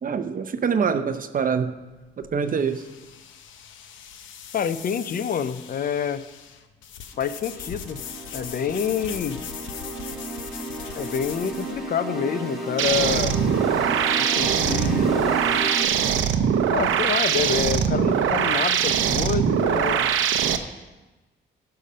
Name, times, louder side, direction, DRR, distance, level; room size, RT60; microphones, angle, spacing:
voice 1, 0.0-1.8 2.2-2.9, right 6 dB, 45° right, 10 dB, 0.7 m, -25 dB
sound 1, 1.4-11.8, left 8 dB, 80° left, 0.9 m, -40 dB
voice 2, 4.5-6.2 7.2-8.0 8.3-9.4 11.0-13.4 14.2-15.4 16.7-20.1, left 7 dB, 50° left, 14 dB, 0.7 m, -27 dB
sound 2, 7.1-15.9, right 2 dB, ahead, 3.7 m, -33 dB
sound 3, 12.8-20.6, right 8 dB, 80° right, 0.8 m, -22 dB
15.5 x 5.8 x 5.5 m, 1.1 s
cardioid pair, 90°, 20 cm